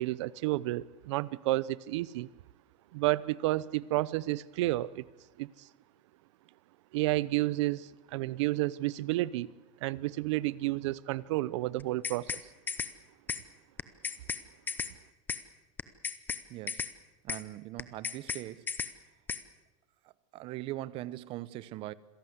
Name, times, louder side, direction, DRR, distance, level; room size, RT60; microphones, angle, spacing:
voice 1, 0.0-2.3 2.9-5.0 5.4-5.5 6.9-9.5 9.8-12.3, right 18 dB, 60° right, 20 dB, 0.8 m, -31 dB
sound 1, 11.8-12.4 12.7-12.9 13.3-13.4 13.8-14.4 14.7-14.9 15.3-15.4 15.8-16.4 16.7-16.9 17.3-17.4 17.8-18.4 18.7-18.9 19.3-19.4, left 5 dB, 10° left, 0.7 m, -34 dB
voice 2, 16.5-16.9 17.2-18.7 20.3-21.9, right 16 dB, 35° right, 18 dB, 0.8 m, -40 dB
26.5 x 17.0 x 8.1 m, 1.1 s
supercardioid pair, 165°, 17 cm